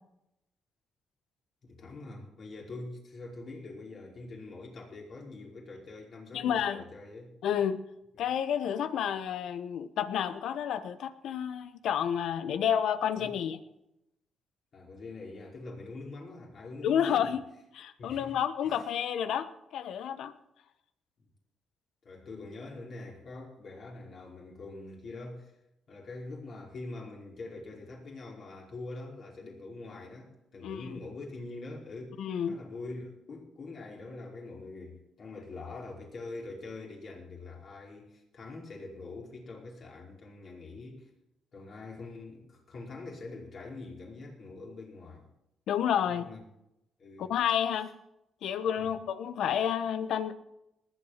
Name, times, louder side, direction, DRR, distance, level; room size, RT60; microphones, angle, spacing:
voice 1, 1.6-7.3 13.2-13.4 14.7-17.3 18.0-18.9 22.0-25.5 25.9-32.2 32.5-41.1 41.5-45.3 46.0-46.4 47.0-47.3 48.8-48.9, left 2 dB, 55° left, 5.0 m, -44 dB
voice 2, 6.3-6.8 7.4-7.8 8.2-13.6 16.8-17.4 17.7-20.3 30.6-30.9 32.2-32.6 45.7-46.2 47.2-47.9 48.4-50.3, left 9 dB, 80° left, 1.1 m, -30 dB
20.0 x 8.2 x 5.8 m
cardioid pair, 70°, 0 cm